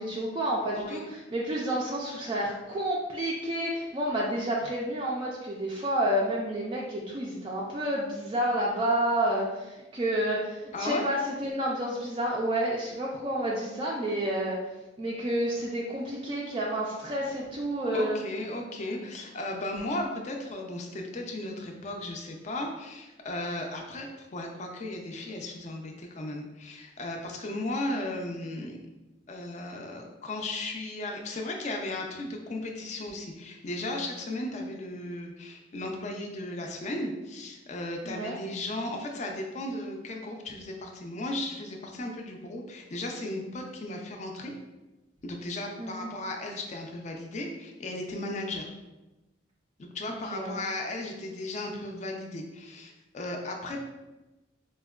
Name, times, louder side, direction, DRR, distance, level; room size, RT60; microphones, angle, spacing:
voice 1, 0.0-14.6 15.0-18.2 38.0-38.4 45.8-46.1 50.1-50.6, right 1 dB, 30° right, -3 dB, 0.3 m, -30 dB
voice 2, 10.7-11.1 17.9-28.8 29.3-44.5 45.2-48.7 49.8-53.8, left 1 dB, 40° left, 2 dB, 0.4 m, -35 dB
4.4 x 2.1 x 2.3 m, 1.1 s
head